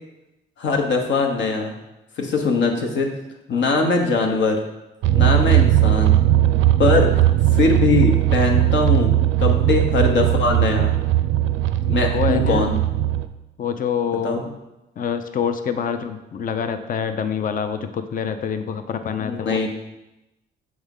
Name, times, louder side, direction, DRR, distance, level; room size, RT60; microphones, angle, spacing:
voice 1, 0.6-1.7 2.2-3.1 3.5-4.6 5.1-6.2 6.8-7.1 7.5-9.1 9.4-11.0 11.8-12.8 14.2-14.4 19.2-19.7, left 3 dB, 70° left, 3 dB, 1.1 m, -21 dB
sound 1, 5.0-13.3, right 13 dB, 80° right, 0.4 m, -18 dB
voice 2, 11.9-12.7 13.6-14.5 15.0-19.7, left 7 dB, 45° left, 9 dB, 0.5 m, -26 dB
6.4 x 3.5 x 5.4 m, 0.97 s
cardioid pair, 90°, 20 cm